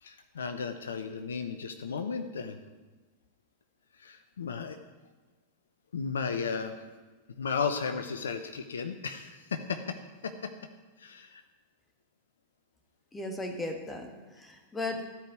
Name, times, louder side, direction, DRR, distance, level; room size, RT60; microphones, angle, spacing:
voice 1, 0.0-2.6 4.0-4.8 5.9-6.8 7.4-10.0 10.2-10.5 11.0-11.4, left 5 dB, 65° left, 8 dB, 0.7 m, -34 dB
voice 2, 13.1-15.1, left 2 dB, 10° left, 4 dB, 1.6 m, -36 dB
13.0 x 4.9 x 9.0 m, 1.3 s
figure-of-eight pair, 90°, 0 cm